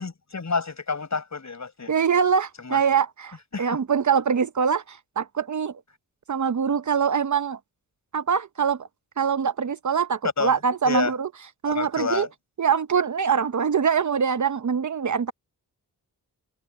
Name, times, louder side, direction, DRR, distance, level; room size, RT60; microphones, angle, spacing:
voice 1, 0.0-1.9 2.6-2.8 3.5-3.6 10.4-10.6 10.8-11.1 11.7-12.3, left 4 dB, 45° left, 6.6 m, -29 dB
voice 2, 1.9-5.8 6.3-7.6 8.1-8.9 9.2-11.3 11.6-12.3 12.6-15.3, right 6 dB, 50° right, 0.9 m, -23 dB
cardioid pair, 55°, 39 cm